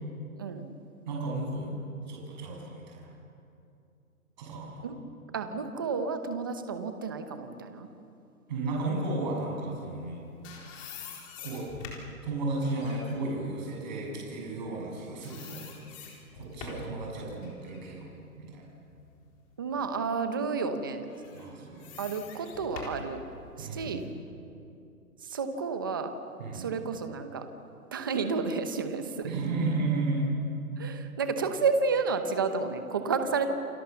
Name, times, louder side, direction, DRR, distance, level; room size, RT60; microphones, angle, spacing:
voice 1, 0.4-0.7 4.8-5.0 5.3-7.9 19.6-21.1 22.0-23.2 23.6-24.0 25.2-26.1 26.5-27.5 27.9-29.3 30.8-33.5, right 4 dB, 15° right, 8 dB, 0.8 m, -31 dB
voice 2, 1.1-1.7 2.1-3.1 4.4-4.9 8.5-10.3 11.4-11.7 12.2-15.6 16.3-18.1 18.4-18.7 21.3-22.0 23.6-24.0 26.4-26.7 29.2-30.3, right 2 dB, 30° right, -2 dB, 7.4 m, -33 dB
sound 1, 10.0-14.9 15.2-17.0 17.4-19.4 19.9-20.0 21.0-24.0, left 5 dB, 20° left, 4.0 m, -46 dB
29.0 x 29.0 x 7.0 m, 2.6 s
hypercardioid pair, 165°, 45 cm